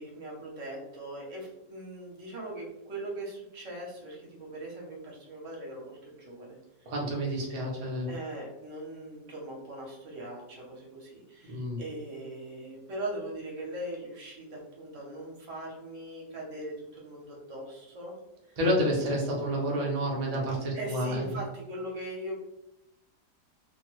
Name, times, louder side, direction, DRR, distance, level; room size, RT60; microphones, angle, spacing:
voice 1, 0.0-6.6 8.1-18.2 18.5-18.6 20.7-22.3, right 1 dB, 55° right, -2 dB, 1.0 m, -40 dB
voice 2, 6.9-8.1 11.5-11.8 18.6-21.2, equal, 90° right, -3 dB, 0.3 m, -29 dB
2.9 x 2.2 x 3.0 m, 0.90 s
omnidirectional pair, 1.8 m